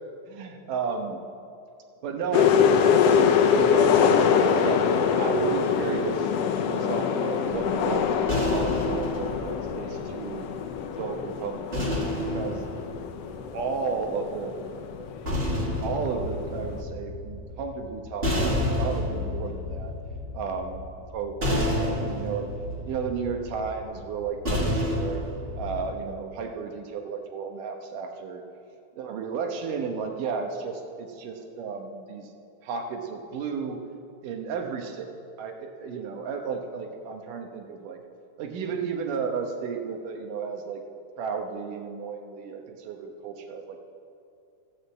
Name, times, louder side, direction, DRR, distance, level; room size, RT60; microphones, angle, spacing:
voice 1, 0.3-1.2 2.0-4.9 5.2-6.3 6.6-10.5 10.9-12.7 13.5-14.6 15.8-19.9 20.3-20.8 21.1-22.5 22.9-25.2 25.6-28.4 28.9-32.3 32.6-33.8 34.2-35.1 35.4-38.0 38.4-40.8 41.2-43.8, right 5 dB, 85° right, 4 dB, 2.7 m, -33 dB
sound 1, 2.3-16.8, left 7 dB, 80° left, 1.4 m, -24 dB
sound 2, 7.5-10.8 11.7-14.0 14.9-26.0, left 1 dB, 25° right, 1.5 m, -30 dB
14.5 x 6.7 x 7.8 m, 2.5 s
omnidirectional pair, 3.7 m